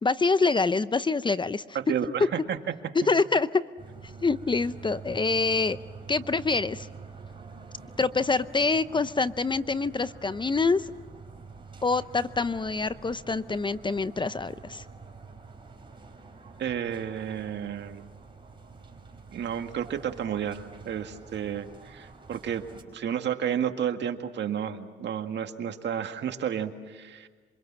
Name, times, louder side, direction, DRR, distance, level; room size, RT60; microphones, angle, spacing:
voice 1, 0.0-1.8 2.9-3.6 4.2-5.8 6.1-6.9 8.0-10.9 11.8-14.8, left 4 dB, 25° left, 15 dB, 0.7 m, -26 dB
voice 2, 1.7-2.6 3.0-3.1 16.6-18.0 19.3-22.6 22.9-27.3, right 9 dB, 60° right, 6 dB, 1.9 m, -31 dB
sound 1, 3.8-22.8, right 4 dB, 25° right, 5.0 m, -47 dB
27.5 x 24.5 x 7.5 m, 1.5 s
cardioid pair, 90°, 20 cm